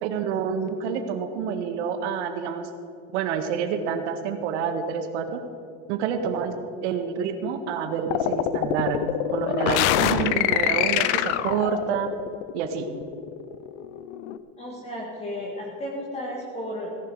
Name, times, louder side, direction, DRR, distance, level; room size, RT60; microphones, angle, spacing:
voice 1, 0.0-2.7 3.1-5.4 5.9-6.5 6.8-12.1 12.5-12.9, right 7 dB, 80° right, 7 dB, 1.7 m, -28 dB
sound 1, 8.1-14.4, left 12 dB, 80° left, 0.8 m, -25 dB
voice 2, 14.6-17.1, equal, 20° left, -2 dB, 2.0 m, -33 dB
17.0 x 11.5 x 4.8 m, 2.6 s
supercardioid pair, 155°, 34 cm